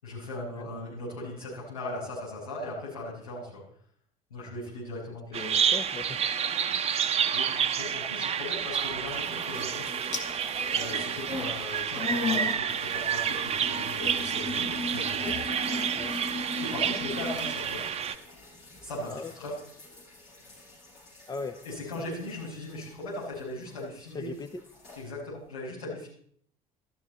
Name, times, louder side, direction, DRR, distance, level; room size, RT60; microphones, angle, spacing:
voice 1, 0.0-3.6 4.3-5.5 7.3-9.8 10.7-15.3 16.6-17.8 18.8-19.1 19.3-19.5 21.6-24.3 25.0-26.1, left 1 dB, 80° left, -7 dB, 6.5 m, -38 dB
voice 2, 5.3-6.2 15.9-16.2 19.0-19.5 21.3-21.6 22.0-22.1 24.1-24.6, left 3 dB, 20° left, 9 dB, 0.9 m, -39 dB
Bird vocalization bird call bird song, 5.3-18.2, right 8 dB, 35° right, 0.9 m, -29 dB
sound 1, 8.7-11.6 11.9-23.8 24.1-25.0, left 3 dB, 60° left, 6.7 m, -39 dB
sound 2, 9.5-17.9, left 4 dB, 45° left, 2.2 m, -48 dB
14.0 x 12.5 x 4.1 m, 0.63 s
figure-of-eight pair, 60°, 18 cm